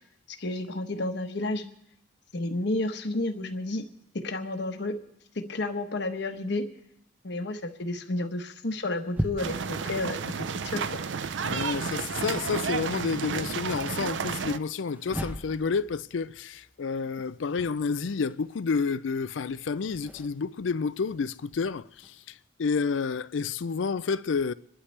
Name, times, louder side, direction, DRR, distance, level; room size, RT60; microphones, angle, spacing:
voice 1, 0.4-1.6 2.3-3.8 4.1-5.0 5.3-6.7 7.2-10.3 10.6-11.0, left 2 dB, 65° left, 1.1 m, -31 dB
sound 1, 8.7-13.0 14.6-22.1, equal, 10° right, 0.7 m, -41 dB
sound 2, 9.4-14.6, right 5 dB, 70° right, 0.5 m, -32 dB
voice 2, 11.4-24.5, left 5 dB, 80° left, 0.5 m, -30 dB
27.5 x 11.5 x 3.3 m
head